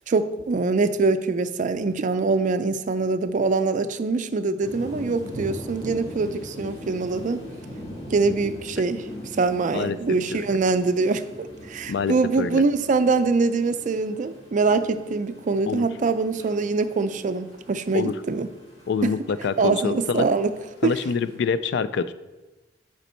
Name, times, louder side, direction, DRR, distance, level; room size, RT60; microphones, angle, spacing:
voice 1, 0.1-7.5 8.1-9.1 9.4-18.5 19.0-19.1 19.6-20.5 20.8-20.9, right 4 dB, 45° right, 11 dB, 0.4 m, -24 dB
sound 1, 4.6-21.4, equal, 35° left, 2.2 m, -41 dB
voice 2, 11.9-12.6 15.7-15.8 17.9-18.1 18.9-20.3 20.8-22.1, left 5 dB, 65° left, 14 dB, 0.3 m, -26 dB
8.1 x 5.1 x 4.3 m, 1.1 s
head